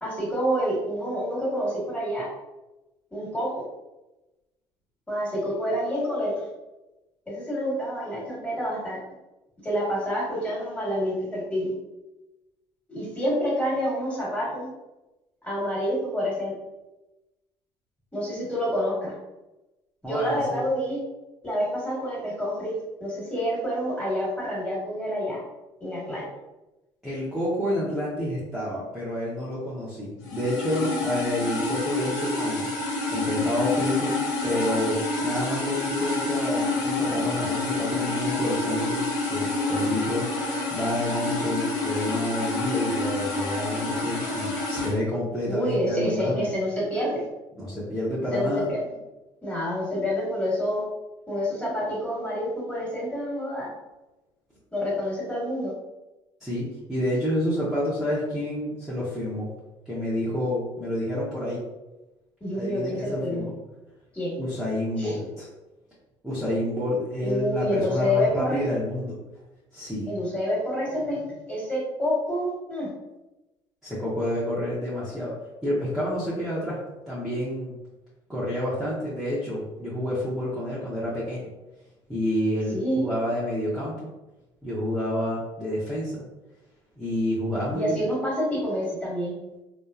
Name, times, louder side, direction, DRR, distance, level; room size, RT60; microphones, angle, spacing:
voice 1, 0.0-2.3 3.1-3.6 5.1-6.5 7.3-9.0 9.6-11.7 12.9-14.7 15.4-16.5 18.1-19.1 20.1-21.0 21.4-25.4 25.8-26.2 45.4-47.2 48.3-49.0 49.4-50.8 51.3-53.7 54.7-55.7 62.4-63.5 64.1-64.4 65.0-65.2 67.2-68.6 70.1-72.9 82.7-83.1 87.7-89.4, equal, 15° left, -5 dB, 1.4 m, -28 dB
voice 2, 20.0-20.7 27.0-32.7 33.1-34.2 34.4-40.3 40.7-46.5 47.6-48.7 56.4-59.5 59.9-61.6 62.5-63.5 64.4-65.5 66.2-69.2 69.7-70.1 73.8-75.3 75.6-76.8 77.1-77.7 78.3-81.5 82.1-84.1 84.6-86.2 87.0-88.0, left 1 dB, 5° right, -10 dB, 0.9 m, -29 dB
sound 1, 30.2-44.9, left 2 dB, 85° left, 0.8 m, -28 dB
3.0 x 2.1 x 2.4 m, 1.0 s
supercardioid pair, 75°, 11 cm